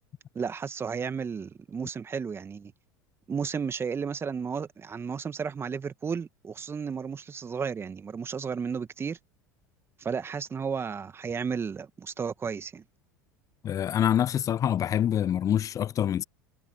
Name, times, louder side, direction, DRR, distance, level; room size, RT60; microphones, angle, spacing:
voice 1, 0.4-2.7 3.3-9.2 10.0-12.8, right 6 dB, 25° right, 1.8 m, -33 dB
voice 2, 13.6-16.2, left 10 dB, 35° left, 0.8 m, -25 dB
hypercardioid pair, 80°, 10 cm